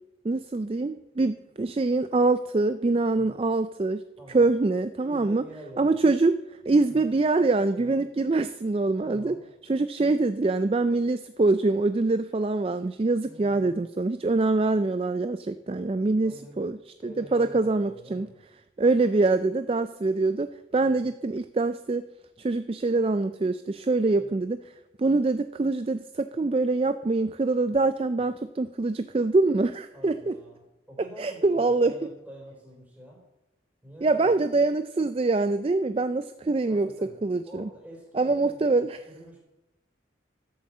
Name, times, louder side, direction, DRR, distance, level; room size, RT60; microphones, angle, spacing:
voice 1, 0.2-4.0 4.3-5.4 5.8-6.4 6.7-9.3 9.7-16.8 17.0-18.3 18.8-22.0 22.4-24.6 25.0-30.3 31.2-31.9 34.0-36.9 37.2-37.7 38.1-38.9, right 3 dB, 30° right, 11 dB, 0.3 m, -24 dB
voice 2, 4.2-4.5 5.0-6.0 6.9-7.1 7.7-8.0 9.0-9.4 13.2-13.8 16.2-16.6 17.0-18.4 19.1-19.2 20.8-21.1 24.2-24.4 29.9-33.2 33.8-34.5 36.7-37.2 37.5-39.4, right 1 dB, 10° right, -1 dB, 4.0 m, -46 dB
12.5 x 7.7 x 7.3 m, 0.95 s
head